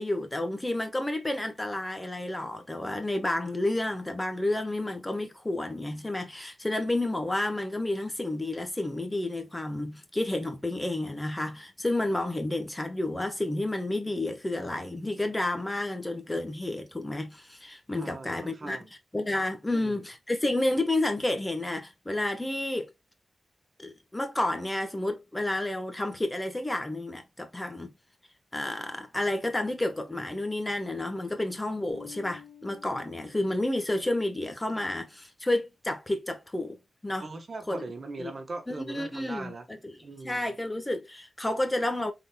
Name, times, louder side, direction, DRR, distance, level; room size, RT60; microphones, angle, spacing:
voice 1, 0.0-18.8 19.1-22.9 23.8-27.9 28.5-36.8 37.0-37.3 37.7-37.8 38.2-38.3 38.7-39.9 40.2-42.1, left 1 dB, 20° left, 1.2 m, -30 dB
voice 2, 18.0-18.9 19.7-20.0 37.2-39.6 40.0-40.5, right 3 dB, 55° right, 1.3 m, -40 dB
Bass guitar, 31.9-34.3, left 9 dB, 90° left, 1.0 m, -51 dB
5.2 x 3.9 x 2.2 m
cardioid pair, 60°, 0 cm